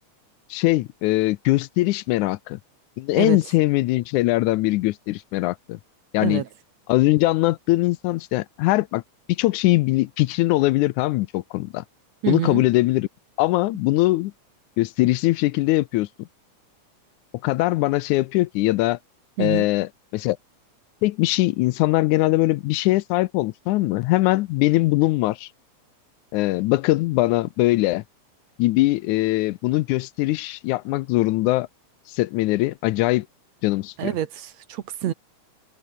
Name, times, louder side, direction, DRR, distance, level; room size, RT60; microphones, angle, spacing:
voice 1, 0.5-2.6 3.0-5.8 6.1-6.4 6.9-9.0 9.3-11.8 12.3-13.1 13.4-14.3 14.8-16.3 17.4-19.0 19.4-20.4 21.0-25.5 26.3-28.0 28.6-31.7 32.1-33.3 33.6-34.1, left 18 dB, 80° left, 2.0 m, -21 dB
voice 2, 12.2-12.6 19.4-19.7 34.0-35.1, right 11 dB, 65° right, 2.4 m, -26 dB
omnidirectional pair, 3.5 m